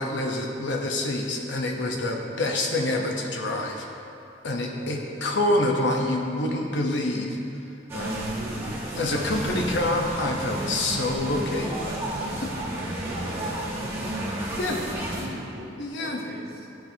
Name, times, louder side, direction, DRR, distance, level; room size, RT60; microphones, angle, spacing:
voice 1, 0.0-3.9 4.4-7.3 7.9-8.3 9.0-11.7 14.6-14.8 15.8-16.2, left 1 dB, 65° left, 1 dB, 0.8 m, -26 dB
voice 2, 4.7-5.6 8.2-9.6 11.6-16.8, equal, 55° right, -2 dB, 1.0 m, -41 dB
sound 1, 7.9-15.3, right 1 dB, 15° right, 1.1 m, -32 dB
11.5 x 4.4 x 2.7 m, 2.8 s
head